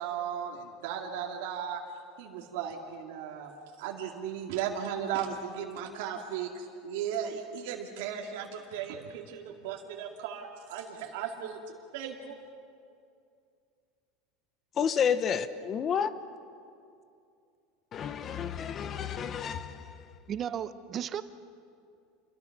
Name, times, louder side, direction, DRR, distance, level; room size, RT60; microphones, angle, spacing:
voice 1, 0.0-1.8 2.2-3.5 3.8-11.6 11.9-12.4, right 8 dB, 70° right, 1 dB, 2.4 m, -36 dB
voice 2, 14.8-16.1 17.9-20.1, left 7 dB, 25° left, 13 dB, 0.9 m, -30 dB
voice 3, 20.3-21.2, right 9 dB, 30° right, 12 dB, 0.9 m, -34 dB
29.0 x 23.0 x 6.0 m, 2.4 s
supercardioid pair, 160°, 0 cm